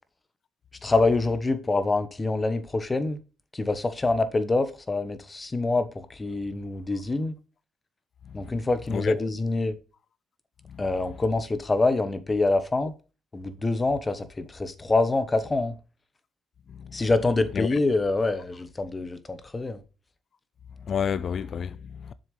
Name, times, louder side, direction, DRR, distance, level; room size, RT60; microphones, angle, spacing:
voice 1, 0.8-3.2 3.5-7.3 8.3-9.8 10.8-12.9 13.3-15.8 16.9-19.8, left 3 dB, 25° left, 1.1 m, -25 dB
voice 2, 20.9-22.1, left 7 dB, 55° left, 0.5 m, -30 dB
7.1 x 6.5 x 3.2 m
cardioid pair, 90°, 0 cm